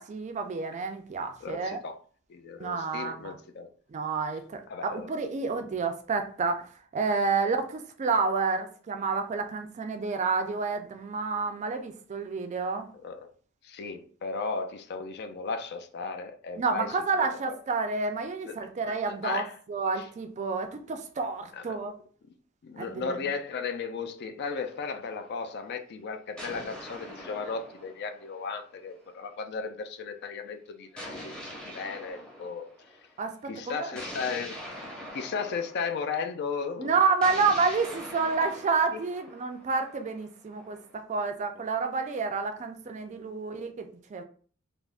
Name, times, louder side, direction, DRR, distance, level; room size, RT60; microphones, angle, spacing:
voice 1, 0.0-1.8 2.6-3.4 3.9-12.9 16.6-21.9 22.8-23.2 33.2-34.0 36.8-44.2, right 4 dB, 35° right, 0.3 m, -29 dB
voice 2, 1.4-2.0 2.3-3.7 4.7-5.1 13.0-13.3 13.6-17.6 18.4-18.5 18.9-19.0 19.2-19.6 20.0-20.1 21.5-21.8 22.6-32.7 33.5-34.6 35.1-36.9 38.9-39.0 41.6-41.7, left 5 dB, 50° left, 0.4 m, -35 dB
sound 1, 24.5-25.6 26.4-29.0 31.0-33.1 33.9-36.3 37.2-41.0, equal, 5° left, 0.6 m, -43 dB
3.3 x 2.0 x 2.4 m
head